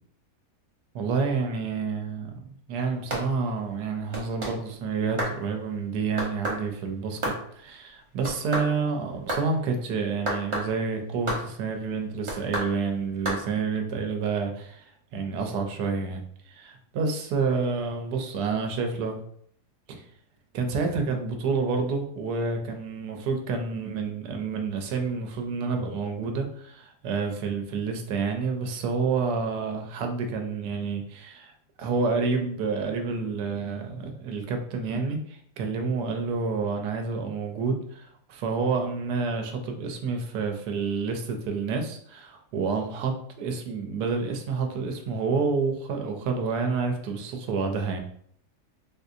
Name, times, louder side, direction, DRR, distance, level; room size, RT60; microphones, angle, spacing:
voice 1, 0.9-19.2 19.9-20.0 20.5-31.5 31.8-48.0, right 4 dB, 90° right, 4 dB, 1.2 m, -29 dB
sound 1, 3.1-3.2 4.1-4.5 5.2-5.4 6.2-6.6 7.2-7.4 8.2-8.7 9.3-9.4 10.3-10.7 11.3-11.4 12.3-12.7 13.3-13.4, right 1 dB, 45° right, 0.4 m, -29 dB
3.6 x 2.7 x 2.5 m, 0.65 s
omnidirectional pair, 1.7 m